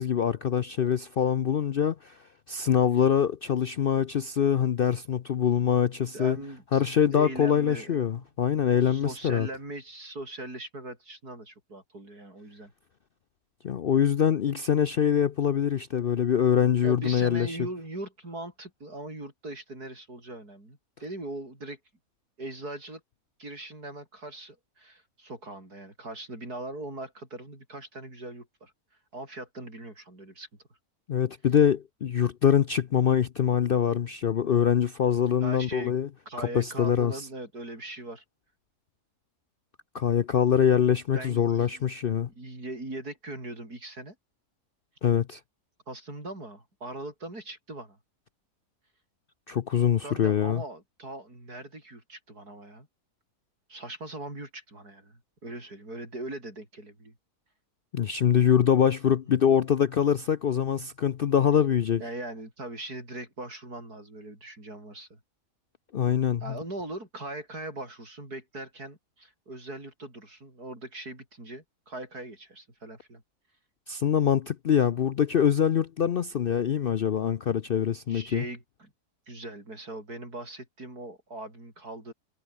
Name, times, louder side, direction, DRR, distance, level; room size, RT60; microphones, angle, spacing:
voice 1, 0.0-2.2 2.5-6.4 6.7-9.5 13.6-17.6 31.1-36.1 36.4-37.1 39.9-42.3 45.0-45.4 49.5-50.6 57.9-62.0 65.9-66.6 73.9-78.4, left 8 dB, 60° left, 0.6 m, -24 dB
voice 2, 6.1-6.8 7.1-8.3 8.8-12.7 16.8-21.8 22.4-23.0 23.4-28.7 29.1-30.5 35.4-35.9 36.3-38.2 41.1-41.8 42.4-44.2 45.9-48.0 50.0-52.9 53.7-57.1 62.0-65.2 66.4-73.2 78.1-78.9 79.3-82.1, right 2 dB, 85° right, 8.8 m, -40 dB
omnidirectional pair, 1.6 m